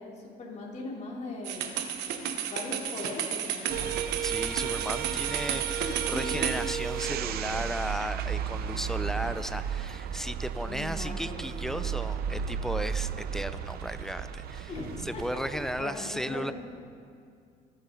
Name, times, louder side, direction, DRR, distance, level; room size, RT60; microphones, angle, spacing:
voice 1, 0.0-3.9 5.8-6.4 10.6-11.9 14.7-15.4 15.8-16.5, left 2 dB, 40° left, -3 dB, 3.4 m, -40 dB
sound 1, 1.4-6.6, right 9 dB, 90° right, 1.1 m, -32 dB
sound 2, 3.7-15.8, right 8 dB, 65° right, 0.7 m, -34 dB
voice 2, 4.2-14.7 15.0-16.5, equal, 5° left, 11 dB, 0.5 m, -35 dB
25.0 x 9.8 x 3.9 m, 2.3 s
cardioid pair, 110°, 17 cm